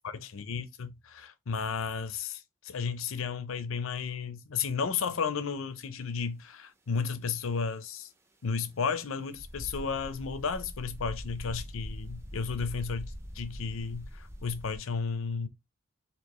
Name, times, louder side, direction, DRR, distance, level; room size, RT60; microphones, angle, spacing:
voice 1, 0.0-8.1 8.4-15.5, left 5 dB, 80° left, 0.6 m, -33 dB
sound 1, 9.3-14.8, equal, 10° right, 0.6 m, -42 dB
4.5 x 2.8 x 3.0 m
head